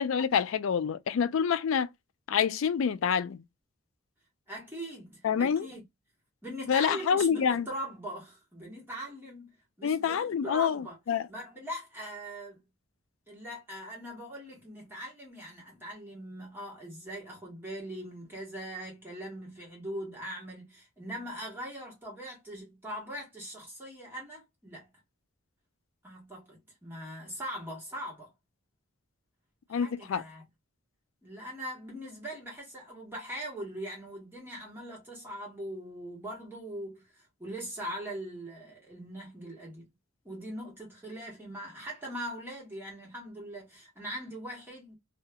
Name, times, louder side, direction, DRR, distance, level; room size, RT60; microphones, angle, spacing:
voice 1, 0.0-1.9 2.3-3.4 5.2-5.7 6.7-7.7 9.8-11.3 29.7-30.2, left 7 dB, 75° left, 0.3 m, -27 dB
voice 2, 4.5-5.8 6.4-9.5 9.8-11.0 11.3-12.6 13.3-24.9 26.0-28.3 29.7-30.4 31.2-39.9 40.2-45.0, equal, 10° right, 1.4 m, -41 dB
2.8 x 2.4 x 2.2 m
head